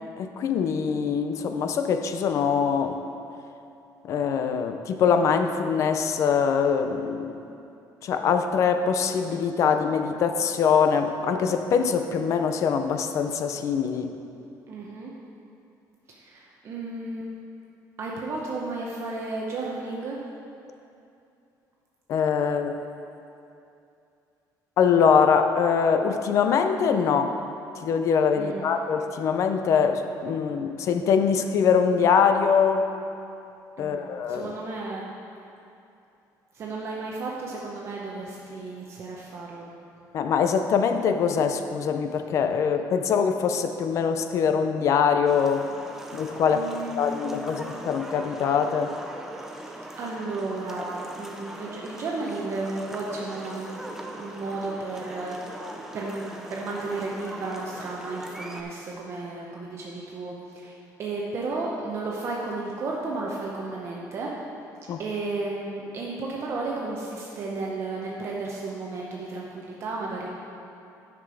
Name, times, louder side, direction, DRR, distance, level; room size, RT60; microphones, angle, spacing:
voice 1, 0.2-3.0 4.0-7.3 8.0-14.1 22.1-22.8 24.8-27.3 27.8-32.8 33.8-34.5 40.1-45.7 46.1-46.7 47.0-48.9 64.9-65.0, left 6 dB, 45° left, 7 dB, 0.5 m, -23 dB
voice 2, 14.7-15.1 16.1-17.4 18.0-20.2 28.3-28.7 33.8-35.1 36.5-39.7 46.5-47.6 49.5-49.7 50.0-55.6 55.9-64.3 65.0-70.3, right 3 dB, 40° right, -3 dB, 0.8 m, -33 dB
sound 1, 45.3-58.6, right 1 dB, 5° right, 0.5 m, -41 dB
9.8 x 6.0 x 4.9 m, 2.7 s
cardioid pair, 180°, 7 cm